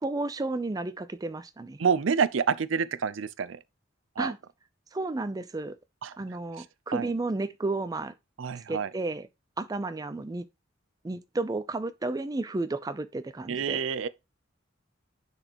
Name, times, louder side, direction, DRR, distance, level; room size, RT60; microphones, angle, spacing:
voice 1, 0.0-1.8 4.2-4.4 4.9-5.8 6.2-8.1 8.7-9.3 9.6-10.4 11.0-13.8, right 2 dB, 20° right, 0.4 m, -32 dB
voice 2, 1.8-3.6 4.2-4.3 6.0-6.2 6.6-6.7 6.9-7.1 8.4-8.9 13.5-14.1, right 6 dB, 80° right, 0.5 m, -28 dB
10.0 x 4.1 x 2.9 m
head